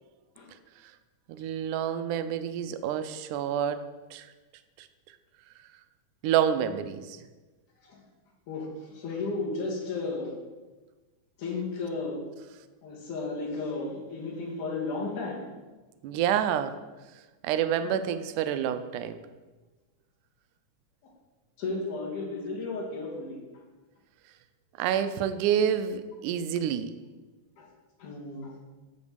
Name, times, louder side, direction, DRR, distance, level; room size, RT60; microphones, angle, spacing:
voice 1, 1.3-3.8 4.1-4.3 4.8-4.9 6.2-7.2 16.0-16.8 17.4-19.2 24.8-27.0, right 9 dB, 90° right, 11 dB, 2.1 m, -28 dB
voice 2, 8.5-10.4 11.4-12.2 12.8-15.5 17.8-18.0 21.6-23.4 27.6-27.7 28.0-28.6, left 3 dB, 80° left, -2 dB, 3.1 m, -34 dB
7.0 x 5.2 x 6.8 m, 1.2 s
omnidirectional pair, 3.5 m